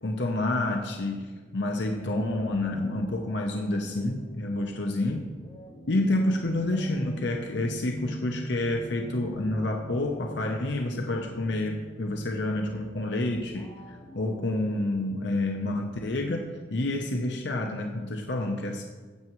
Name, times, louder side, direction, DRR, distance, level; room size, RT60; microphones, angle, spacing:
voice 1, 0.0-5.3 5.9-18.8, left 2 dB, 60° left, 2 dB, 0.8 m, -29 dB
sound 1, 1.5-15.9, equal, 35° left, 2.1 m, -51 dB
sound 2, 5.9-13.6, equal, 15° left, 2.4 m, -42 dB
15.0 x 7.8 x 3.1 m, 1.4 s
head